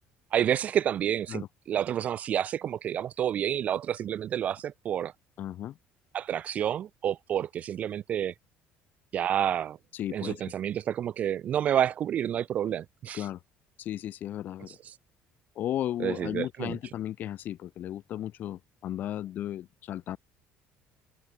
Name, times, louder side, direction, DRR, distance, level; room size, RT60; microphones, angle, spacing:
voice 1, 0.3-5.1 6.1-8.3 9.1-9.8 10.1-13.3 14.7-14.8 16.0-16.8, right 10 dB, 35° right, 0.3 m, -29 dB
voice 2, 5.4-5.8 9.9-10.4 13.1-13.4 13.8-14.8 15.6-20.2, left 12 dB, 40° left, 2.2 m, -35 dB
cardioid pair, 180°, 4 cm